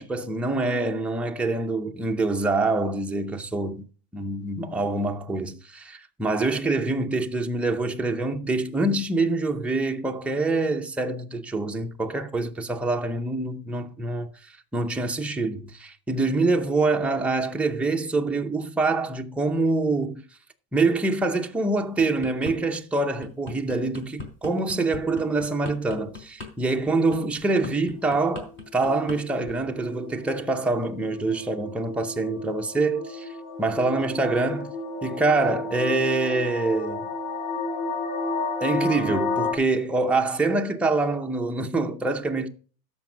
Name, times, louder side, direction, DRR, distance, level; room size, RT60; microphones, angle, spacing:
voice 1, 0.0-3.9 4.1-20.2 20.7-33.3 33.6-34.7 35.0-37.1 38.6-42.5, right 3 dB, 5° right, 0.6 m, -25 dB
sound 1, 21.8-22.6 23.0-29.2 29.4-29.7, left 3 dB, 25° left, 3.9 m, -39 dB
sound 2, 27.6-39.5, left 3 dB, 55° left, 2.4 m, -32 dB
13.0 x 5.4 x 6.0 m
supercardioid pair, 145°, 44 cm